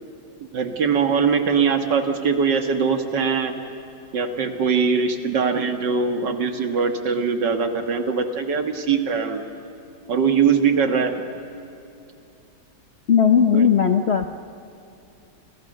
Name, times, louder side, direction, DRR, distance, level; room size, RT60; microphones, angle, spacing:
voice 1, 0.5-3.5 4.1-9.4 10.1-11.1 13.5-13.7, right 5 dB, 70° right, 6 dB, 2.4 m, -21 dB
voice 2, 13.1-14.3, left 7 dB, 50° left, 7 dB, 0.8 m, -17 dB
29.5 x 27.5 x 6.7 m, 2.7 s
omnidirectional pair, 2.0 m